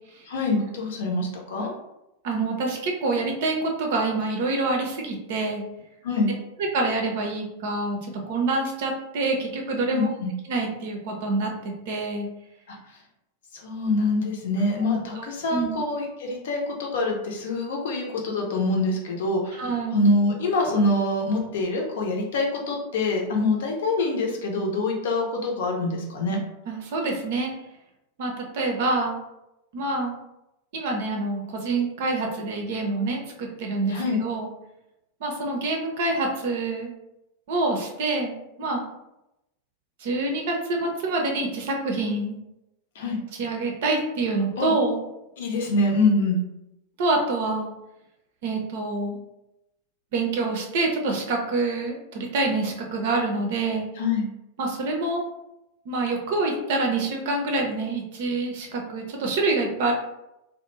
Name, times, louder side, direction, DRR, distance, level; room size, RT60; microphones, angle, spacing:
voice 1, 0.3-1.7 6.0-6.3 9.9-10.3 12.7-12.8 13.6-26.4 33.9-34.2 43.0-43.2 44.6-44.7 45.4-46.4 54.0-54.3, left 2 dB, 55° left, 0 dB, 0.7 m, -25 dB
voice 2, 2.2-5.6 6.7-8.0 8.3-10.1 10.5-12.3 15.2-15.3 15.5-15.8 19.6-20.0 26.7-27.5 28.2-29.2 29.7-30.1 30.7-34.5 35.2-36.9 37.5-38.3 38.6-38.8 40.0-42.4 43.4-45.0 47.0-47.7 48.4-49.2 50.1-53.9 54.6-55.2 55.9-59.9, right 3 dB, 55° right, 1 dB, 0.5 m, -26 dB
2.4 x 2.1 x 3.0 m, 0.89 s
figure-of-eight pair, 90°, 0 cm